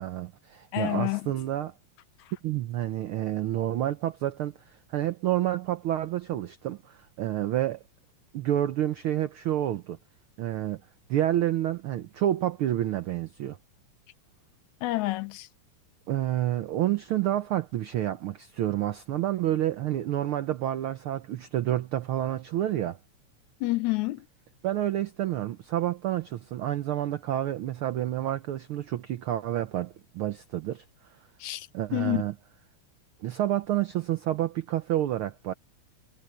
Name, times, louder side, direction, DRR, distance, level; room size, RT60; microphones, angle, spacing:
voice 1, 0.0-1.7 2.4-7.8 8.3-10.0 10.4-10.8 11.1-13.6 16.1-23.0 24.6-30.8 31.7-32.3 33.2-35.5, right 12 dB, 80° right, 1.2 m, -29 dB
voice 2, 0.7-1.3 14.8-15.5 23.6-24.3 31.4-32.2, left 19 dB, 90° left, 2.2 m, -29 dB
omnidirectional pair, 3.3 m